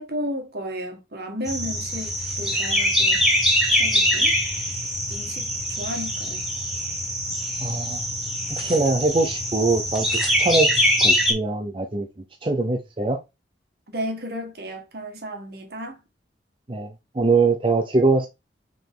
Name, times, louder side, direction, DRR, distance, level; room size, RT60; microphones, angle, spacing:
voice 1, 0.0-3.2 3.8-4.3 5.1-6.5 13.9-16.0, equal, 60° right, 1.8 m, -33 dB
sound 1, 1.5-11.3, equal, ahead, 1.9 m, -23 dB
voice 2, 7.6-8.0 8.5-10.1 10.4-12.1 12.4-13.2 16.7-18.3, right 3 dB, 30° right, 0.7 m, -22 dB
5.0 x 4.9 x 3.7 m
head